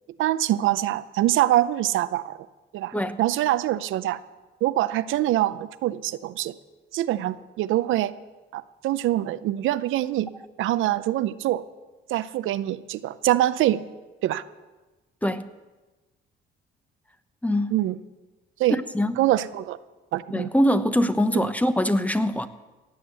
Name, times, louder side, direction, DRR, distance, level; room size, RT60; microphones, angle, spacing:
voice 1, 0.2-2.4 2.7-4.2 4.6-6.5 6.9-8.1 8.5-10.3 10.6-11.6 12.1-13.8 14.2-14.4 17.7-18.0 18.6-18.8 19.2-19.8 20.1-20.5 21.3-21.5, right 14 dB, 85° right, 0.6 m, -24 dB
voice 2, 17.4-17.8 18.7-19.2 20.3-22.5, equal, 5° left, 0.9 m, -23 dB
17.0 x 8.1 x 8.1 m
cardioid pair, 90°, 20 cm